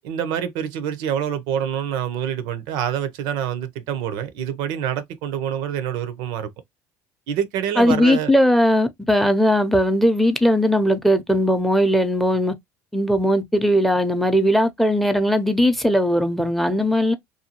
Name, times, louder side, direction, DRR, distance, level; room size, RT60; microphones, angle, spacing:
voice 1, 0.0-6.5 7.3-8.3, right 9 dB, 75° right, 0.5 m, -26 dB
voice 2, 7.8-12.5 12.9-17.1, equal, ahead, 0.5 m, -18 dB
2.6 x 2.3 x 2.8 m
supercardioid pair, 80°, 8 cm